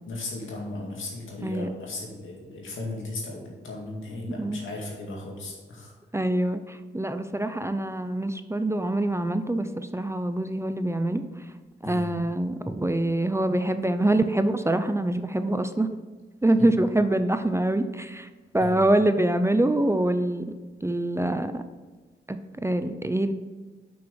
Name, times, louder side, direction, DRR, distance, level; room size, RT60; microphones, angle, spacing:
voice 1, 0.1-5.9 11.8-12.1 16.6-16.7 18.6-18.7, left 2 dB, 80° left, -1 dB, 2.1 m, -36 dB
voice 2, 6.1-11.2 11.8-15.9 16.4-18.3 18.5-20.5 20.8-21.6 22.3-23.3, right 1 dB, 15° right, 9 dB, 0.6 m, -25 dB
6.1 x 5.9 x 6.3 m, 1.3 s
cardioid pair, 50°, 20 cm